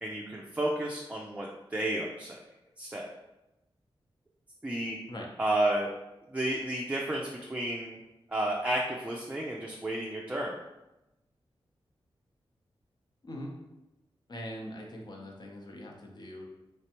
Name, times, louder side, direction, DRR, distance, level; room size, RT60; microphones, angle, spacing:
voice 1, 0.0-2.4 2.8-3.1 4.6-5.0 5.4-5.9 6.3-8.0 8.3-10.5, right 1 dB, 15° right, -2 dB, 0.4 m, -31 dB
voice 2, 14.3-16.4, equal, 45° left, 0 dB, 0.8 m, -42 dB
3.3 x 3.1 x 2.9 m, 0.95 s
wide cardioid pair, 80°, 10 cm